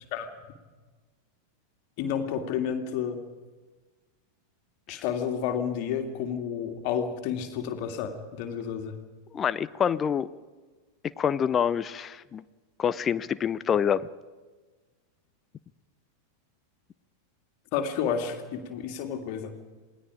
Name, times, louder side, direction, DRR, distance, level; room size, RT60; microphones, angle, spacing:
voice 1, 2.0-3.2 4.9-8.9 17.7-19.5, left 7 dB, 45° left, 4 dB, 2.7 m, -30 dB
voice 2, 9.3-10.3 11.2-12.4 12.8-14.1, left 8 dB, 25° left, 17 dB, 0.7 m, -26 dB
27.5 x 19.5 x 5.1 m, 1.3 s
figure-of-eight pair, 90°, 0 cm